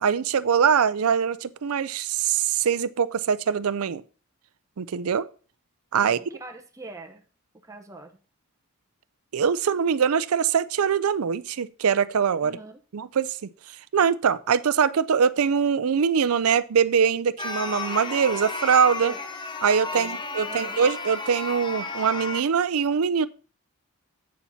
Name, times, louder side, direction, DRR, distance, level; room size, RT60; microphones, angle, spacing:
voice 1, 0.0-4.0 4.8-5.3 5.9-6.2 9.3-12.6 12.9-13.4 13.9-19.1 19.6-23.3, right 7 dB, 85° right, 0.5 m, -23 dB
voice 2, 6.0-7.2 7.6-8.2 12.4-12.8 19.0-19.2 19.9-20.8, right 2 dB, 15° right, 0.9 m, -43 dB
sound 1, 17.4-22.4, left 3 dB, 20° left, 0.8 m, -33 dB
8.5 x 7.1 x 4.1 m
head